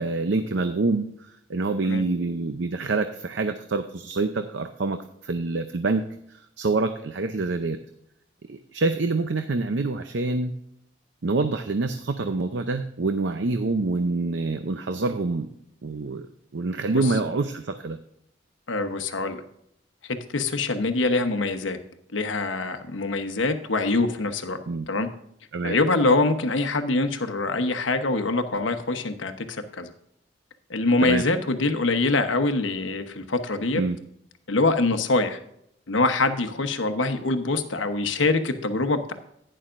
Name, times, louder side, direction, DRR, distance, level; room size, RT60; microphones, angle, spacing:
voice 1, 0.0-6.0 6.3-7.8 8.5-10.5 11.2-15.5 15.8-16.3 16.5-18.0 24.7-24.9 25.5-25.8 31.0-31.2 33.7-34.0, right 3 dB, 70° right, 8 dB, 0.6 m, -26 dB
voice 2, 18.7-19.4 20.1-21.8 22.1-24.6 24.9-25.1 25.6-29.9 30.7-33.8 34.5-35.4 35.9-39.1, left 3 dB, 90° left, 7 dB, 1.0 m, -24 dB
11.5 x 10.0 x 2.5 m, 0.74 s
head